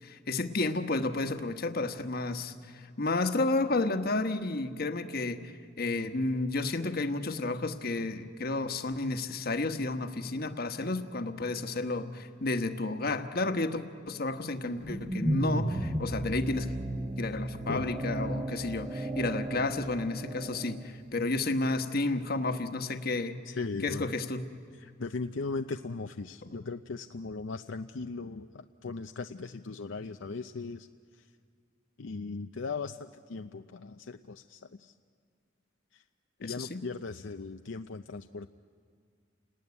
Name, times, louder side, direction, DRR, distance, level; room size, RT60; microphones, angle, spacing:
voice 1, 0.0-16.7 17.2-23.6 23.8-24.5 26.4-26.6 36.4-36.8, left 2 dB, 55° left, 8 dB, 1.3 m, -32 dB
wierd-wooo-sound, 14.6-20.9, right 1 dB, 15° right, 1.1 m, -34 dB
voice 2, 23.5-24.1 24.8-30.9 32.0-34.9 35.9-36.0 36.4-38.5, left 4 dB, 75° left, 6 dB, 0.6 m, -38 dB
29.5 x 19.5 x 9.7 m, 2.2 s
head